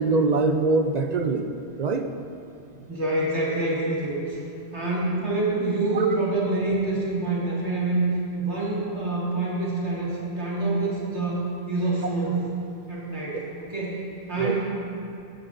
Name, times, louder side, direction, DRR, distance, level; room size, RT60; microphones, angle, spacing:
voice 1, 0.0-1.5 1.8-2.1 5.9-6.1 14.4-14.6, right 3 dB, 55° right, 6 dB, 0.5 m, -23 dB
voice 2, 2.8-4.4 4.7-8.1 8.4-12.4 12.9-14.7, right 2 dB, 80° right, -6 dB, 2.4 m, -26 dB
14.5 x 10.5 x 2.6 m, 2.8 s
omnidirectional pair, 1.1 m